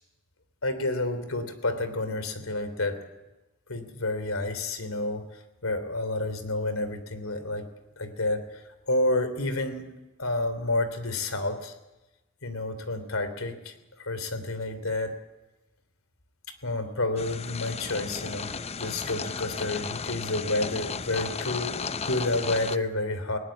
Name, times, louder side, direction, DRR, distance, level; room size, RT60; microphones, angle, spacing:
voice 1, 0.6-3.0 3.7-5.3 5.6-7.7 8.0-9.8 10.2-11.7 12.4-15.1 16.6-23.4, left 2 dB, 75° left, 11 dB, 3.1 m, -30 dB
sound 1, 17.2-22.8, left 5 dB, 30° left, 0.7 m, -34 dB
20.0 x 18.0 x 8.9 m, 1.0 s
head